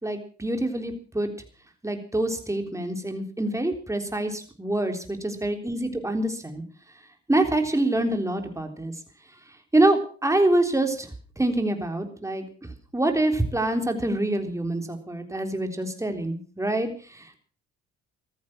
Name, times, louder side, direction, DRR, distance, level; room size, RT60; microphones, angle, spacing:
voice 1, 0.0-1.3 1.8-6.6 7.3-8.9 9.7-11.1 11.4-12.4 12.9-17.4, right 1 dB, 10° right, 5 dB, 3.6 m, -25 dB
14.5 x 14.0 x 6.1 m, 0.41 s
cardioid pair, 90°, 30 cm